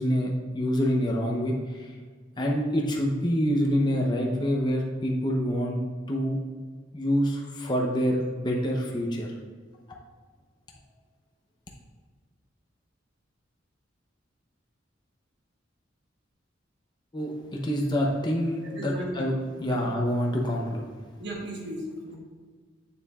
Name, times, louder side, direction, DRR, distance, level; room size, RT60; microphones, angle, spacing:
voice 1, 0.0-1.9 2.4-6.4 6.9-9.3 17.1-20.8, equal, 25° left, -1 dB, 0.7 m, -26 dB
voice 2, 18.6-19.2 19.6-19.8 21.2-22.2, equal, 60° right, -2 dB, 1.5 m, -36 dB
7.2 x 6.9 x 2.4 m, 1.5 s
head